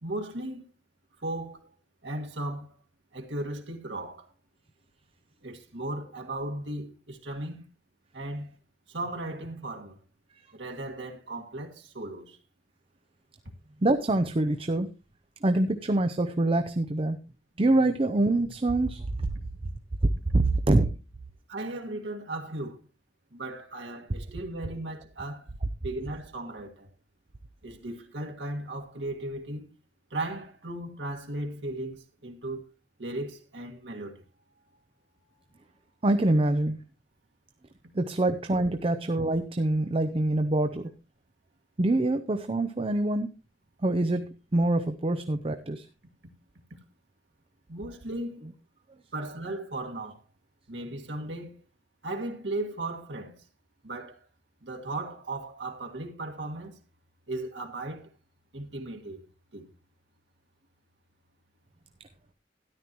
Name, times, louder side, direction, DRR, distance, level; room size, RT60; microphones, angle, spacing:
voice 1, 0.0-0.7 1.2-1.7 2.0-2.7 3.1-4.3 5.4-7.6 8.1-8.6 8.9-10.0 10.5-12.4 21.5-22.8 23.3-25.5 25.8-26.9 27.6-29.7 30.1-32.6 33.0-34.2 47.7-48.5 49.1-50.2 50.7-51.5 52.0-53.4 53.8-54.2 54.6-56.8 57.3-58.1 58.5-59.3 59.5-59.7, right 2 dB, 85° right, 1.9 m, -36 dB
voice 2, 13.8-14.9 15.4-17.2 17.6-19.0 20.3-20.9 36.0-36.8 37.9-40.9 41.8-43.3 43.8-45.8, right 2 dB, 30° right, 0.6 m, -25 dB
13.0 x 11.0 x 3.0 m
head